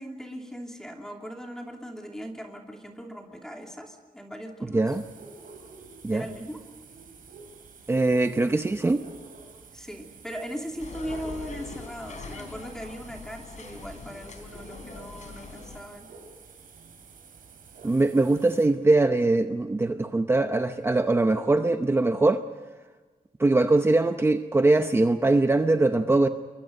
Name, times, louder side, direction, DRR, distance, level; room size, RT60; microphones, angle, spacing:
voice 1, 0.0-5.0 6.1-6.6 9.7-16.1, equal, 5° left, 1 dB, 2.9 m, -39 dB
sound 1, 4.9-18.7, right 4 dB, 80° right, 4.9 m, -50 dB
voice 2, 7.9-9.0 17.8-22.4 23.4-26.3, right 2 dB, 15° right, 7 dB, 0.8 m, -22 dB
sound 2, 10.8-15.8, left 4 dB, 60° left, 3.9 m, -42 dB
28.0 x 23.5 x 5.4 m, 1.4 s
wide cardioid pair, 160°, 14 cm